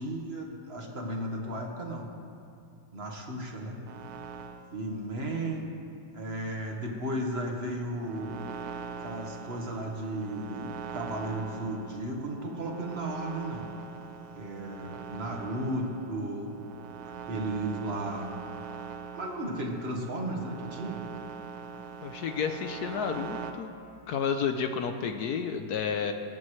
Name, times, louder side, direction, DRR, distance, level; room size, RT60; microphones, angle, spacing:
voice 1, 0.0-2.0 2.9-3.8 4.7-5.7 6.1-8.4 9.0-13.7 14.3-16.5 17.0-18.3 19.1-21.0, right 1 dB, 35° right, 0 dB, 1.5 m, -34 dB
sound 1, 3.9-4.7 7.7-23.5, right 6 dB, 80° right, 1.7 m, -42 dB
voice 2, 22.0-23.7 24.1-26.1, left 6 dB, 70° left, 6 dB, 0.9 m, -31 dB
19.5 x 14.5 x 3.2 m, 2.6 s
omnidirectional pair, 2.3 m